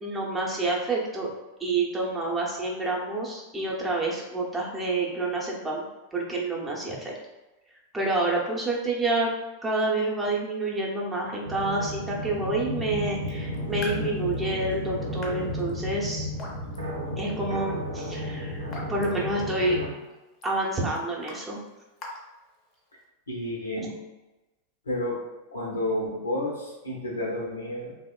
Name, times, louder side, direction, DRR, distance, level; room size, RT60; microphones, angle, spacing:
voice 1, 0.0-1.3 1.6-5.8 6.1-7.1 7.9-9.3 9.6-16.3 17.2-19.8 20.4-21.6, right 2 dB, 10° right, -4 dB, 0.6 m, -28 dB
sound 1, 11.4-19.9, equal, 80° right, 0.5 m, -33 dB
Raindrop / Drip, 13.2-23.0, left 1 dB, 30° left, 0.6 m, -47 dB
voice 2, 23.3-23.9 24.9-25.2 25.5-28.0, left 1 dB, 75° left, -2 dB, 0.6 m, -30 dB
2.9 x 2.0 x 2.2 m, 1.0 s
figure-of-eight pair, 90°, 0 cm